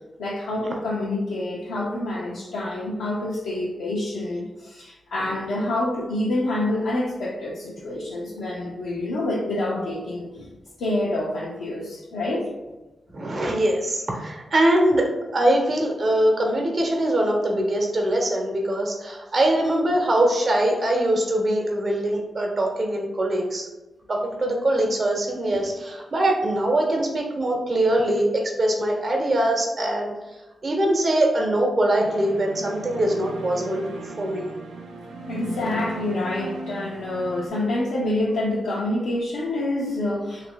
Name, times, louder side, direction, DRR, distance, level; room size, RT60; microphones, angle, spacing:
voice 1, 0.2-10.5 10.8-12.5 25.5-25.6 35.2-40.5, left 1 dB, 85° left, -5 dB, 0.5 m, -27 dB
voice 2, 13.1-23.7 24.1-30.1 30.6-34.5, right 1 dB, 55° right, 1 dB, 0.9 m, -22 dB
sound 1, 32.0-37.5, right 3 dB, 85° right, 0.4 m, -37 dB
2.8 x 2.4 x 3.5 m, 1.1 s
supercardioid pair, 40°, 0 cm